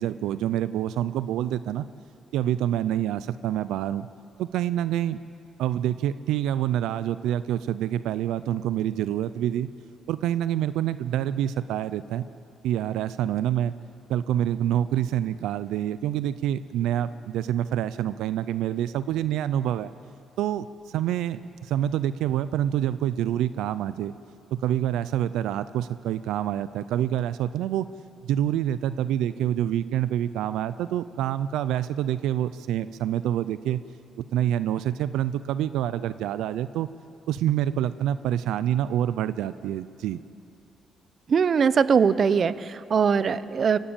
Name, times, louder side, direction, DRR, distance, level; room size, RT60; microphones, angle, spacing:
voice 1, 0.0-1.8 2.3-4.1 4.4-5.2 5.6-9.7 10.1-12.2 12.6-13.7 14.1-19.9 20.4-24.1 24.5-27.8 28.2-33.8 34.3-36.9 37.3-40.2, right 11 dB, 90° right, 15 dB, 0.5 m, -27 dB
voice 2, 41.3-43.8, right 6 dB, 50° right, 16 dB, 0.7 m, -21 dB
25.0 x 15.0 x 8.8 m, 2.6 s
cardioid pair, 90°, 0 cm